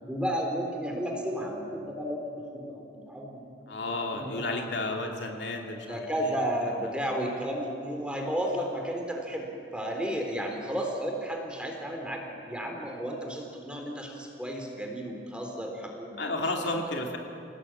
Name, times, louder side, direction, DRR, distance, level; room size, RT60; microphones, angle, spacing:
voice 1, 0.1-2.2 2.5-3.5 4.1-4.5 5.9-12.2 12.5-16.2 16.7-16.8, equal, 5° right, 1 dB, 3.7 m, -33 dB
voice 2, 3.7-6.3 16.2-17.2, left 2 dB, 70° left, 2 dB, 2.9 m, -32 dB
28.0 x 18.0 x 9.0 m, 2.7 s
head